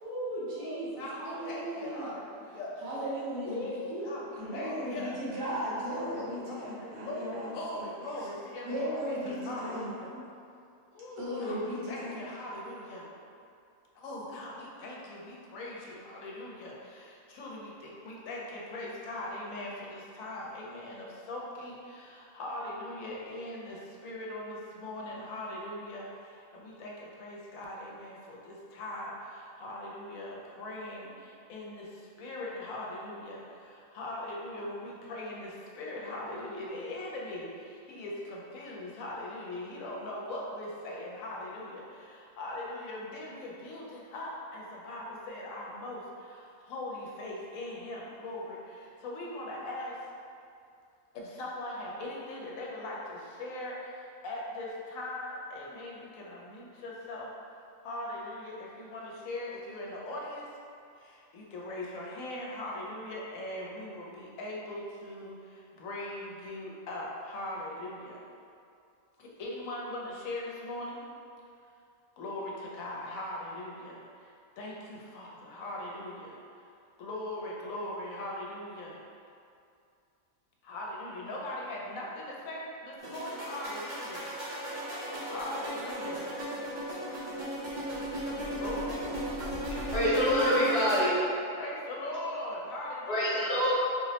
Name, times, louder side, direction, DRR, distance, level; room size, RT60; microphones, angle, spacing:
voice 1, 0.0-2.1 2.8-3.6 3.9-4.0 4.3-7.8 8.7-10.3 11.2-12.2, equal, 80° right, -8 dB, 1.3 m, -36 dB
voice 2, 0.6-2.7 3.4-5.2 6.5-7.2 7.5-10.1 10.9-13.1 13.9-50.1 51.1-60.5 61.0-68.2 69.2-71.0 72.2-76.3 77.0-79.0 80.6-84.3 84.7-85.0 85.3-86.3 88.5-89.0 91.6-93.5, left 1 dB, 80° left, -3 dB, 1.0 m, -40 dB
sound 1, 83.0-91.0, equal, 50° right, 0.6 m, -36 dB
voice 3, 89.9-91.1 93.1-93.7, equal, 55° left, -9 dB, 1.0 m, -26 dB
4.0 x 2.0 x 2.7 m, 2.5 s
omnidirectional pair, 1.4 m